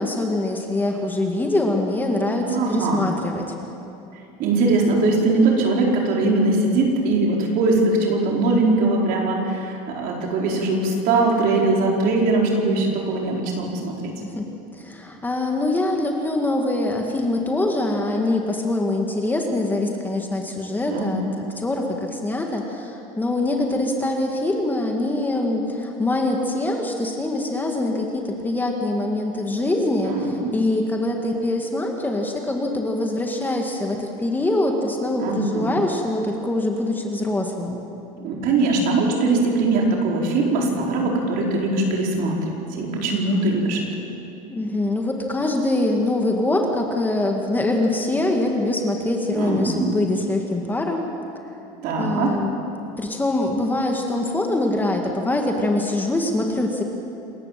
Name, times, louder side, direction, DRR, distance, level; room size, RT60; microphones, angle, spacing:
voice 1, 0.0-3.4 14.2-14.4 14.7-37.8 44.5-51.1 52.0-52.5 53.0-56.8, left 2 dB, 10° left, 2 dB, 2.0 m, -24 dB
voice 2, 2.4-3.1 4.4-14.1 20.9-21.3 30.0-30.5 35.2-35.7 38.2-42.4 42.7-43.9 49.3-49.9 51.8-52.4, right 3 dB, 60° right, -1 dB, 4.8 m, -21 dB
27.5 x 14.0 x 7.7 m, 2.7 s
cardioid pair, 135°, 17 cm